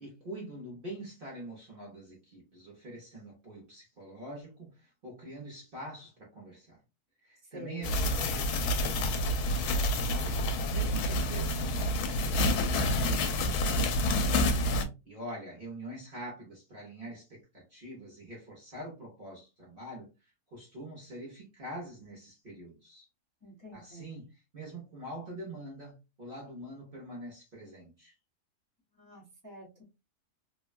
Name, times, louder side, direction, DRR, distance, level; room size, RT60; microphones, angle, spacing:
voice 1, 0.0-6.8 7.2-11.8 12.1-14.2 15.0-23.1 23.7-28.1, right 1 dB, 40° right, 0.9 m, -45 dB
voice 2, 7.5-8.0 23.4-24.2 29.0-29.8, equal, 15° left, 0.8 m, -48 dB
sound 1, 7.8-14.8, left 1 dB, 80° left, 1.1 m, -28 dB
3.2 x 2.2 x 2.4 m
omnidirectional pair, 1.7 m